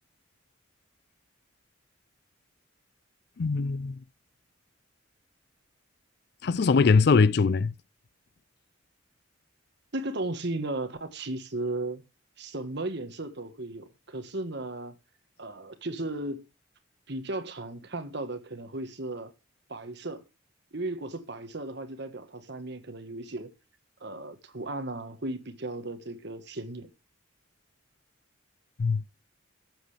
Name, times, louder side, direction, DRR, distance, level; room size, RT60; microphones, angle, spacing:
voice 1, 3.4-4.0 6.4-7.7 28.8-29.0, left 4 dB, 55° left, 0.4 m, -22 dB
voice 2, 9.9-12.0 12.4-14.9 15.4-16.4 17.1-19.3 19.7-20.2 20.7-23.5 24.0-26.9, right 2 dB, 55° right, 1.4 m, -35 dB
14.5 x 7.5 x 3.3 m
head